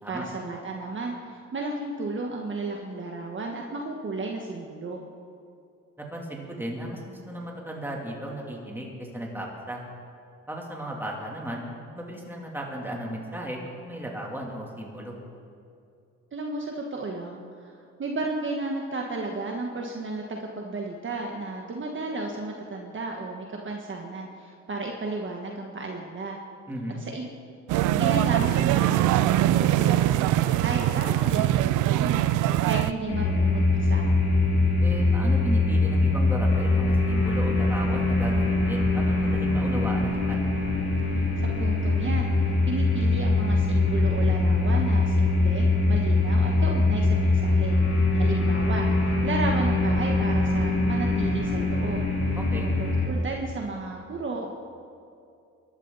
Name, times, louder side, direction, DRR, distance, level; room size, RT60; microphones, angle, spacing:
voice 1, 0.1-5.0 16.3-17.7 18.0-26.4 27.0-27.3 28.0-34.1 41.4-42.3 42.7-47.8 48.1-52.0 52.5-54.5, right 3 dB, 40° right, 1 dB, 1.5 m, -33 dB
voice 2, 6.0-9.8 10.5-15.1 26.7-27.0 34.8-40.4 52.4-52.7, right 1 dB, 5° right, -2 dB, 3.2 m, -35 dB
sound 1, 27.7-32.9, right 14 dB, 90° right, 0.5 m, -22 dB
sound 2, 33.1-53.0, left 2 dB, 55° left, 3.8 m, -23 dB
22.5 x 12.0 x 4.2 m, 2.4 s
cardioid pair, 90°, 30 cm